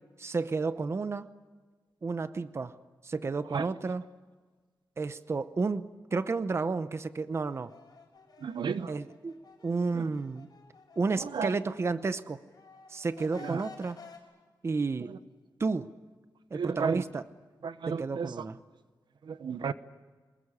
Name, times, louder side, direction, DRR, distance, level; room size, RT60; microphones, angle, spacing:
voice 1, 0.2-1.3 2.0-2.7 3.0-4.0 5.0-7.7 8.9-9.3 9.6-10.5 11.0-12.4 12.9-14.0 14.6-15.1 15.6-15.9 16.5-17.2 17.9-18.6, right 4 dB, 35° right, 0.8 m, -31 dB
sound 1, 7.5-12.2 12.5-14.2, left 4 dB, 60° left, 5.8 m, -53 dB
voice 2, 8.4-8.9 9.9-10.0 11.2-11.5 13.4-13.6 15.1-15.2 16.5-17.0 17.6-18.3 19.2-19.7, right 6 dB, 80° right, 0.9 m, -33 dB
24.0 x 21.0 x 9.9 m
wide cardioid pair, 170°, 8 cm